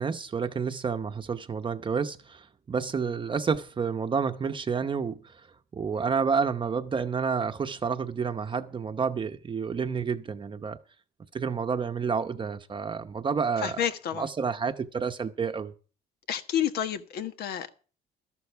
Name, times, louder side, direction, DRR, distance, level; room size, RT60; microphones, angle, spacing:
voice 1, 0.0-5.5 5.7-10.8 11.3-13.8 14.2-15.7, right 5 dB, 30° right, 0.8 m, -29 dB
voice 2, 13.6-14.3 16.3-17.7, left 9 dB, 70° left, 1.4 m, -30 dB
13.0 x 12.0 x 4.6 m
cardioid pair, 110°, 17 cm